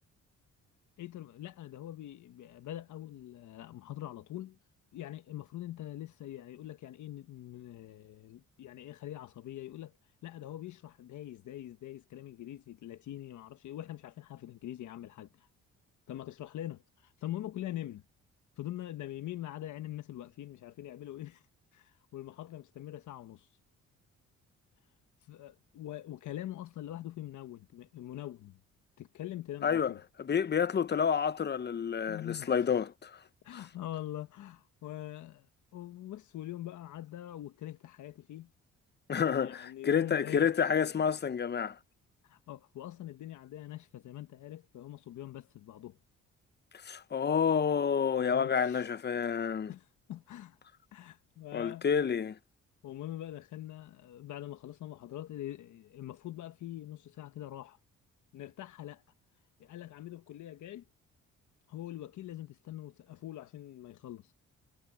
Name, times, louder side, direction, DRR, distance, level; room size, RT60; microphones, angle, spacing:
voice 1, 1.0-4.6 4.9-9.9 10.2-15.5 16.1-18.0 18.6-21.4 21.7-23.5 25.3-28.6 29.0-30.0 32.1-32.9 33.4-35.5 35.7-38.5 39.2-40.5 42.2-46.0 48.1-48.9 49.7-50.6 50.9-51.9 52.8-57.8 58.3-59.0 59.6-60.8 61.7-64.3, left 13 dB, 75° left, 1.2 m, -43 dB
voice 2, 29.6-29.9 30.2-33.1 33.5-33.6 39.1-41.8 46.9-49.7 51.5-52.4, left 7 dB, 35° left, 0.8 m, -29 dB
cardioid pair, 90°, 30 cm